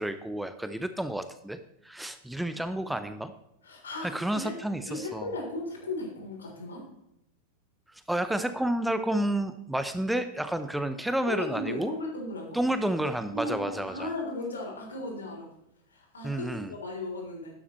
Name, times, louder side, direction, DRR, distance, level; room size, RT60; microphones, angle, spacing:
voice 1, 0.0-1.6 1.8-3.3 4.0-5.3 7.9-11.9 12.5-14.1 16.2-16.7, right 1 dB, 5° right, 10 dB, 0.6 m, -30 dB
voice 2, 3.6-4.1 4.4-6.8 11.3-12.6 13.3-15.5 15.9-17.5, left 2 dB, 70° left, 0 dB, 3.5 m, -36 dB
12.5 x 11.0 x 3.1 m, 0.79 s
figure-of-eight pair, 90°, 0 cm